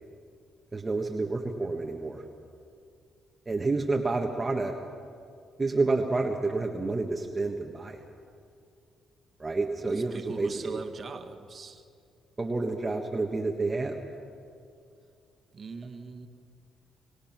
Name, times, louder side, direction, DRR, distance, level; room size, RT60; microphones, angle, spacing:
voice 1, 0.7-2.2 3.5-4.7 5.6-8.0 9.4-10.8 12.4-14.0, right 3 dB, 25° right, 1 dB, 1.5 m, -29 dB
voice 2, 9.9-11.8 15.5-16.3, right 4 dB, 45° right, 5 dB, 1.7 m, -41 dB
26.0 x 18.0 x 6.0 m, 2.4 s
cardioid pair, 90°, 0 cm